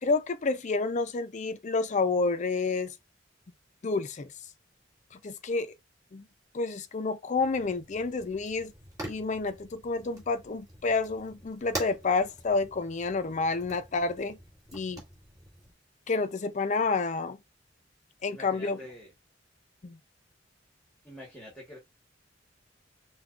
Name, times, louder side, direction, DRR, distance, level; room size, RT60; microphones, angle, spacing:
voice 1, 0.0-2.9 3.8-4.3 5.1-5.7 6.1-6.2 6.5-8.7 9.0-14.4 14.7-15.0 16.1-17.4 18.2-18.8 19.8-20.0, left 3 dB, 40° left, 0.5 m, -29 dB
Fire, 7.4-15.7, right 1 dB, 20° right, 2.1 m, -45 dB
voice 2, 18.3-19.1 21.0-21.8, left 1 dB, 5° left, 1.4 m, -46 dB
5.7 x 2.3 x 2.4 m
head